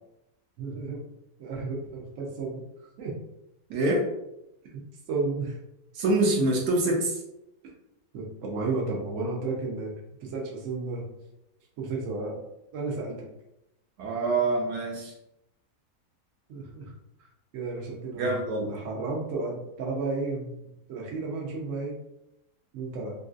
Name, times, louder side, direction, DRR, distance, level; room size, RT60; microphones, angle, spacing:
voice 1, 0.6-1.0 1.4-2.6 3.0-3.1 4.7-4.8 5.1-5.6 8.1-9.9 10.2-11.1 11.8-12.4 12.7-13.3 16.5-16.9 17.5-18.4 18.7-21.9 22.7-23.1, right 3 dB, 60° right, -2 dB, 1.1 m, -32 dB
voice 2, 3.7-4.0 5.9-7.2 14.0-15.1 18.2-18.7, right 2 dB, 90° right, -1 dB, 1.3 m, -25 dB
3.0 x 2.6 x 2.5 m, 0.85 s
omnidirectional pair, 1.7 m